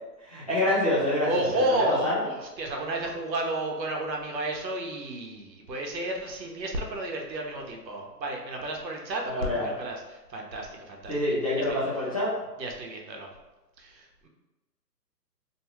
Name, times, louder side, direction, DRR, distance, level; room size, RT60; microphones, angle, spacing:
voice 1, 0.2-2.2 9.2-9.7 11.1-12.3, left 1 dB, 20° left, -12 dB, 0.7 m, -27 dB
voice 2, 1.2-10.0 10.3-11.1 11.7-11.8 12.6-13.3 13.8-14.3, right 1 dB, 85° right, 1 dB, 0.8 m, -31 dB
2.6 x 2.3 x 3.0 m, 1.1 s
hypercardioid pair, 170°, 50 cm